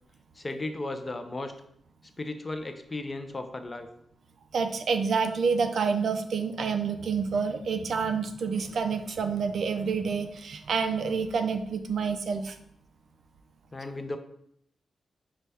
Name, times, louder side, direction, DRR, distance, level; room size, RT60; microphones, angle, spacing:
voice 1, 0.4-1.5 2.2-3.9 13.7-14.2, left 2 dB, 25° left, 8 dB, 0.3 m, -35 dB
voice 2, 4.5-12.6, right 5 dB, 65° right, 8 dB, 0.3 m, -28 dB
5.4 x 2.1 x 3.3 m, 0.73 s
wide cardioid pair, 150°, 0 cm